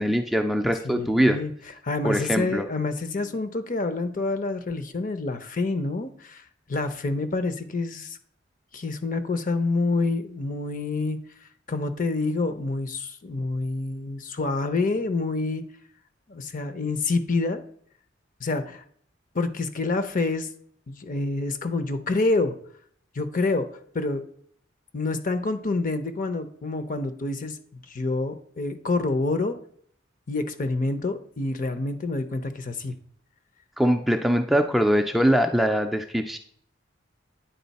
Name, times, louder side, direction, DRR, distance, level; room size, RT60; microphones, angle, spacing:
voice 1, 0.0-1.4 2.0-2.6 33.8-36.4, equal, ahead, 4 dB, 0.4 m, -22 dB
voice 2, 0.8-1.5 1.8-8.2 8.7-11.2 11.7-15.6 16.3-17.6 18.4-18.8 19.3-20.5 20.9-22.5 23.1-23.7 23.9-24.2 24.9-27.6 27.9-29.5 30.3-32.9, left 3 dB, 45° left, 10 dB, 0.7 m, -27 dB
9.2 x 4.0 x 4.1 m, 0.62 s
head